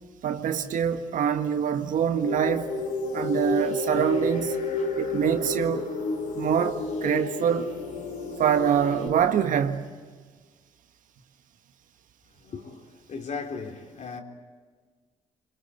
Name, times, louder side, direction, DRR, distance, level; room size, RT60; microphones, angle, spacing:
voice 1, 0.2-2.7 3.1-4.6 5.0-5.8 6.3-7.7 8.4-9.9, right 8 dB, 65° right, 1.6 m, -25 dB
sound 1, 2.2-9.1, left 3 dB, 85° left, 4.2 m, -31 dB
voice 2, 12.4-14.2, left 5 dB, 55° left, 4.0 m, -37 dB
26.5 x 22.5 x 8.4 m
hypercardioid pair, 55°, 15 cm